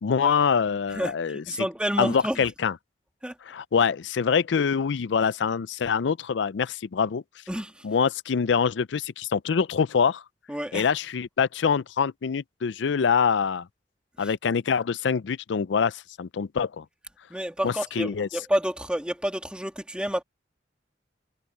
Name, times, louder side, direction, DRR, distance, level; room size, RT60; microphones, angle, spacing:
voice 1, 0.0-1.7 2.0-2.7 3.5-7.2 7.8-10.2 10.7-13.7 14.2-16.8 17.6-18.3, left 6 dB, 75° left, 0.4 m, -25 dB
voice 2, 0.9-2.4 3.2-3.3 7.5-7.9 10.5-10.9 14.2-14.3 17.3-20.2, equal, 5° right, 2.0 m, -29 dB
head